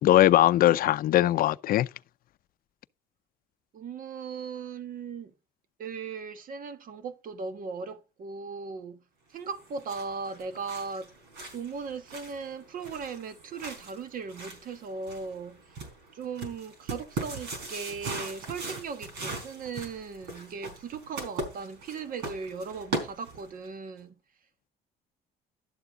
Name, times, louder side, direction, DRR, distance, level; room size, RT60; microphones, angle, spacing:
voice 1, 0.0-1.9, left 13 dB, 60° left, 0.5 m, -20 dB
voice 2, 3.7-5.3 5.8-9.0 9.3-11.1 11.5-15.8 16.1-24.1, right 5 dB, 55° right, 1.4 m, -38 dB
sound 1, 9.5-23.7, right 3 dB, 85° right, 4.5 m, -40 dB
12.0 x 8.1 x 3.7 m
cardioid pair, 110°, 17 cm